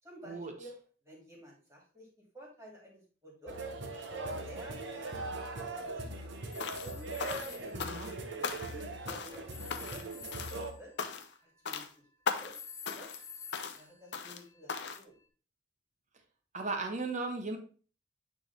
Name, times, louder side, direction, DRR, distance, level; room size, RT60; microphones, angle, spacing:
voice 1, 0.0-0.8 1.0-2.1 2.3-3.6 4.4-4.8 5.1-7.1 7.5-9.5 9.9-10.9 11.4-11.8 12.3-12.5 12.9-13.1 13.7-15.2, equal, 15° right, -2 dB, 2.5 m, -53 dB
sound 1, 3.5-10.7, right 2 dB, 65° right, 1.0 m, -40 dB
sound 2, 6.5-7.8 9.5-12.0 12.5-14.8, left 6 dB, 15° left, 0.7 m, -49 dB
sound 3, 6.6-6.9 7.2-8.2 8.4-8.8 9.1-9.4 9.7-10.1 10.3-10.6 11.0-11.4 11.7-11.9 12.3-12.6 12.9-13.2 13.5-13.8 14.1-14.4 14.7-15.0, left 5 dB, 60° left, 0.6 m, -38 dB
voice 2, 7.7-8.1 16.5-17.6, right 3 dB, 35° right, 4 dB, 1.1 m, -36 dB
8.9 x 3.6 x 3.3 m, 0.38 s
head